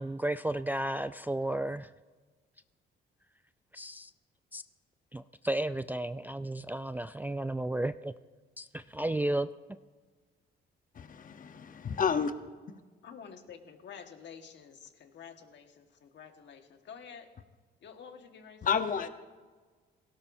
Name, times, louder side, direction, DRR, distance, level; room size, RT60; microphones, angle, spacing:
voice 1, 0.0-1.9 3.7-4.1 4.5-4.6 5.1-8.1 8.6-9.5, right 1 dB, 10° right, 12 dB, 0.3 m, -33 dB
voice 2, 10.9-12.3 18.6-19.1, left 6 dB, 45° left, 9 dB, 0.9 m, -30 dB
voice 3, 13.0-17.3 17.8-19.1, left 7 dB, 65° left, 5 dB, 1.5 m, -49 dB
17.5 x 17.0 x 2.7 m, 1.4 s
cardioid pair, 90°, 20 cm